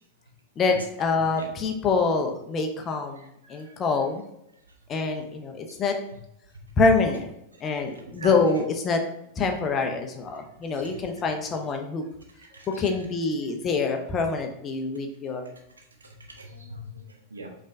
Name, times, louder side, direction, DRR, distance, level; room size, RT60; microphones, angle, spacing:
voice 1, 0.6-4.2 4.9-6.0 6.8-7.3 7.6-9.0 9.4-12.0 12.8-15.5, left 4 dB, 25° left, 4 dB, 0.6 m, -25 dB
voice 2, 3.2-4.1 5.7-5.8 6.5-6.6 7.5-8.5 10.6-11.0 12.4-12.9 16.0-17.5, right 1 dB, 75° right, 3 dB, 0.7 m, -43 dB
5.2 x 3.2 x 2.6 m, 0.81 s
figure-of-eight pair, 90°, 0 cm